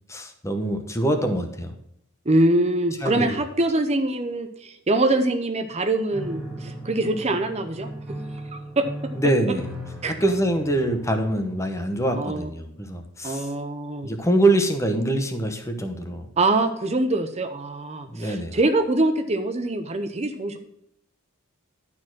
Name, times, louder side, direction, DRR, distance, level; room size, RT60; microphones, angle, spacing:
voice 1, 0.1-1.7 3.0-3.4 9.1-9.7 10.1-13.5 14.0-16.3 18.1-18.6, right 1 dB, 15° left, 6 dB, 1.0 m, -24 dB
voice 2, 2.3-7.9 8.5-8.9 10.0-10.1 12.2-12.5 13.2-14.1 16.4-20.6, right 2 dB, 30° right, 7 dB, 0.7 m, -24 dB
Piano, 6.1-12.0, right 1 dB, ahead, 1.9 m, -38 dB
12.0 x 4.4 x 6.1 m, 0.76 s
head